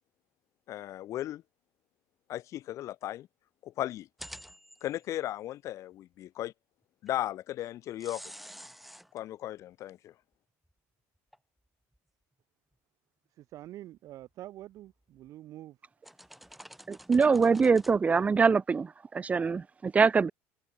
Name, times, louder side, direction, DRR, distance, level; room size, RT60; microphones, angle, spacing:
voice 1, 0.7-1.4 2.3-3.3 3.6-4.1 4.8-6.5 7.0-8.2 9.1-10.1, left 13 dB, 50° left, 0.7 m, -36 dB
sound 1, 4.2-5.1 7.1-7.2 8.0-9.2 10.7-10.8 11.3-11.4 11.9-12.0 14.2-14.6 15.2-15.3 16.0-17.9, equal, ahead, 1.9 m, -49 dB
voice 2, 13.4-15.8, right 14 dB, 55° right, 3.4 m, -46 dB
voice 3, 16.9-20.3, right 5 dB, 20° right, 0.8 m, -24 dB
cardioid pair, 120°, 7 cm